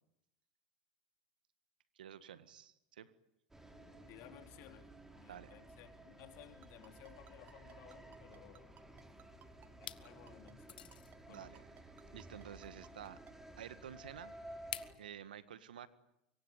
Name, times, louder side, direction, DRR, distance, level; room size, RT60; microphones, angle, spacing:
voice 1, 2.0-3.1 5.3-5.5 11.3-11.6 12.1-13.2 13.6-14.4 15.0-15.9, right 9 dB, 85° right, 1.7 m, -51 dB
sound 1, 3.5-14.9, right 1 dB, 10° right, 4.6 m, -55 dB
voice 2, 4.1-8.8 9.8-11.5, left 12 dB, 60° left, 3.8 m, -58 dB
Ringtone, 6.6-13.3, right 11 dB, 40° right, 1.5 m, -61 dB
sound 2, 8.9-9.4 9.8-10.1 10.7-11.1 12.6-12.7 14.7-15.0, left 10 dB, 90° left, 1.2 m, -46 dB
25.5 x 23.0 x 9.1 m
hypercardioid pair, 100°, 5 cm